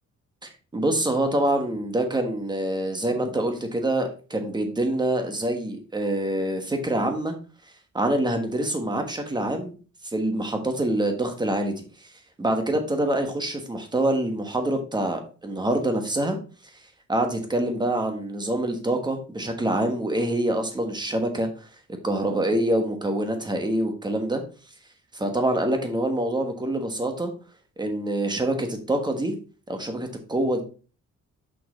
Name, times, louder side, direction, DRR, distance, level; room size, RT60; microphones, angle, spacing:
voice 1, 0.4-7.3 7.9-9.8 10.0-11.8 12.4-16.4 17.1-21.5 22.0-24.4 25.1-27.3 27.8-29.3 29.7-30.6, right 1 dB, 15° right, 5 dB, 1.3 m, -25 dB
6.6 x 5.7 x 4.1 m, 0.36 s
wide cardioid pair, 160°, 30 cm